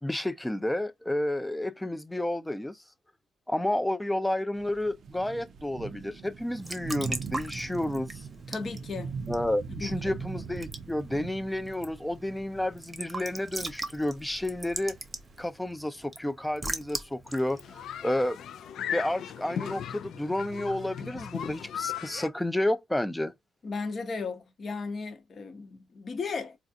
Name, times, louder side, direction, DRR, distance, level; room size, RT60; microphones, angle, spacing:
voice 1, 0.0-2.8 3.5-8.3 9.3-15.0 15.4-18.4 18.9-23.3, left 1 dB, 5° left, 0.4 m, -31 dB
sound 1, 4.5-15.4, right 5 dB, 55° right, 0.5 m, -41 dB
Raindrop / Drip / Trickle dribble, 6.4-18.9, right 2 dB, 20° right, 0.8 m, -41 dB
voice 2, 8.5-9.3 9.8-10.1 23.6-26.6, left 4 dB, 45° left, 0.8 m, -35 dB
sound 2, 17.3-22.3, left 9 dB, 70° left, 0.4 m, -37 dB
3.9 x 2.4 x 2.5 m
cardioid pair, 90°, 0 cm